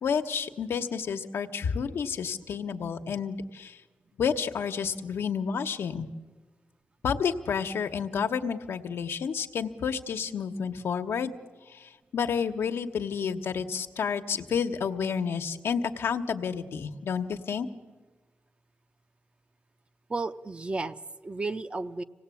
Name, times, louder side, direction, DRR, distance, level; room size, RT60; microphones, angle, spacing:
voice 1, 0.0-3.8 4.2-6.1 7.0-11.3 11.7-17.7, left 6 dB, 85° left, 6 dB, 1.2 m, -30 dB
voice 2, 20.1-22.0, right 3 dB, 25° right, 10 dB, 0.7 m, -33 dB
25.5 x 18.0 x 8.5 m, 1.3 s
wide cardioid pair, 115°, 4 cm